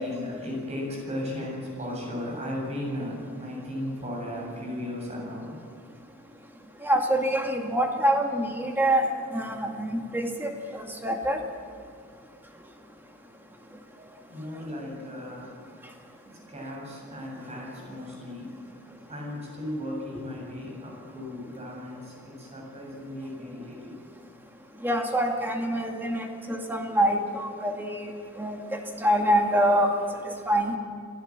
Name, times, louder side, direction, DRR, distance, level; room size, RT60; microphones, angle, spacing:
voice 1, 0.0-5.6 11.3-11.4 14.0-15.7 16.2-18.6 19.1-24.0, left 1 dB, 30° right, -1 dB, 7.5 m, -36 dB
voice 2, 6.8-9.1 9.3-11.4 24.8-28.1 28.4-28.6 29.0-29.9 30.2-30.8, right 1 dB, 10° right, 2 dB, 2.3 m, -25 dB
25.5 x 16.5 x 7.4 m, 2.1 s
head